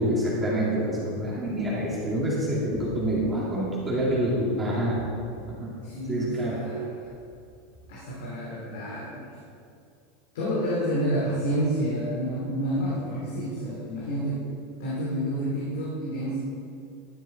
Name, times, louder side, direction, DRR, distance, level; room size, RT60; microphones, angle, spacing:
voice 1, 0.0-5.0 5.4-5.7 6.1-6.6, right 1 dB, 15° right, -7 dB, 2.7 m, -27 dB
voice 2, 5.8-6.8 7.9-9.4 10.3-14.5 14.8-16.4, equal, 80° left, -6 dB, 2.5 m, -29 dB
12.0 x 7.3 x 4.3 m, 2.4 s
supercardioid pair, 125°, 0 cm